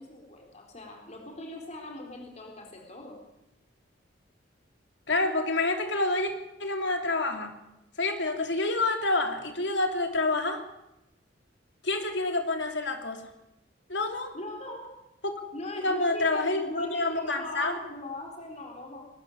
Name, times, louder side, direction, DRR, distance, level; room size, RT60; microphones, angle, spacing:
voice 1, 0.0-3.2 14.3-15.0 15.5-19.1, left 1 dB, 35° left, 2 dB, 3.9 m, -40 dB
voice 2, 5.1-6.3 6.6-7.6 8.0-10.6 11.8-13.3 13.9-14.3 15.2-15.3 15.8-17.8, left 2 dB, 65° left, 5 dB, 3.0 m, -28 dB
22.5 x 13.0 x 9.6 m, 0.90 s
head